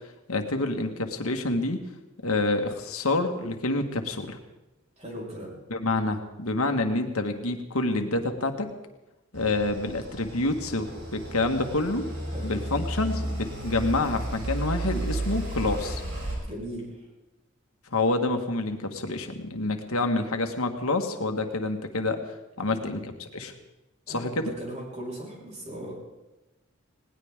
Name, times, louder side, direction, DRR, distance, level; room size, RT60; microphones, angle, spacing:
voice 1, 0.3-1.8 2.2-4.4 5.7-8.7 9.3-12.0 12.4-16.0 17.9-22.2 22.6-23.5 24.1-24.5, left 2 dB, 90° left, 5 dB, 1.7 m, -27 dB
voice 2, 5.0-5.5 12.3-12.6 16.5-17.1 22.7-22.9 24.1-25.9, right 1 dB, 30° right, -2 dB, 5.4 m, -38 dB
sound 1, 9.3-16.3, right 1 dB, 75° right, 7.1 m, -33 dB
20.0 x 18.5 x 3.7 m, 1.0 s
head